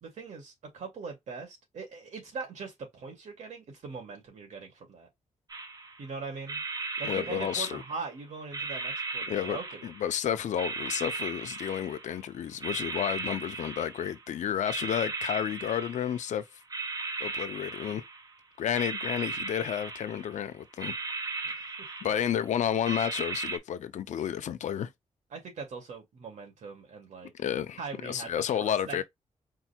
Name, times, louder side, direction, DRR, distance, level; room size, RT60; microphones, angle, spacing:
voice 1, 0.0-5.1 6.0-6.6 7.0-9.9 21.4-22.2 25.3-27.3 27.8-29.0, right 4 dB, 75° right, 2.3 m, -41 dB
sound 1, 5.5-6.1 6.5-8.1 8.5-10.2 10.6-12.2 12.6-14.3 14.7-16.3 16.7-18.3 18.7-20.4 20.8-22.4 22.8-23.6, right 3 dB, 30° right, 0.8 m, -37 dB
voice 2, 7.0-7.8 9.3-16.5 17.2-18.0 18.6-20.9 22.0-24.9 27.3-29.0, left 9 dB, 80° left, 0.6 m, -31 dB
4.6 x 2.3 x 4.4 m
wide cardioid pair, 135°, 12 cm